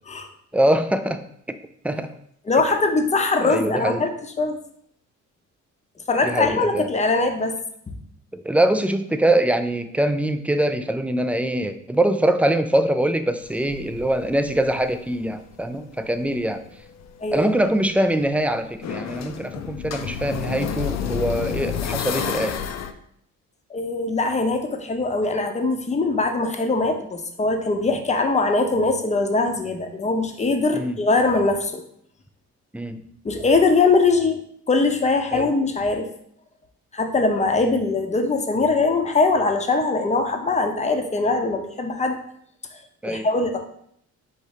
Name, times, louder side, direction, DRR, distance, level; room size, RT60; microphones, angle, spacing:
voice 1, 0.5-1.3 1.8-2.1 3.4-4.1 6.2-6.9 8.3-16.6 17.3-22.6 30.7-31.0 32.7-33.0 35.3-35.5 43.0-43.3, right 1 dB, 5° right, 9 dB, 0.3 m, -23 dB
voice 2, 2.5-4.1 4.4-4.6 6.1-7.5 7.9-8.0 17.2-17.5 23.7-31.8 33.2-34.4 34.7-36.1 36.9-42.2 42.7-42.8 43.1-43.6, left 3 dB, 25° left, 5 dB, 0.7 m, -21 dB
sound 1, 13.4-15.6 16.0-22.9, left 8 dB, 60° left, 0.5 m, -30 dB
4.1 x 2.6 x 4.8 m, 0.68 s
cardioid pair, 90°, 30 cm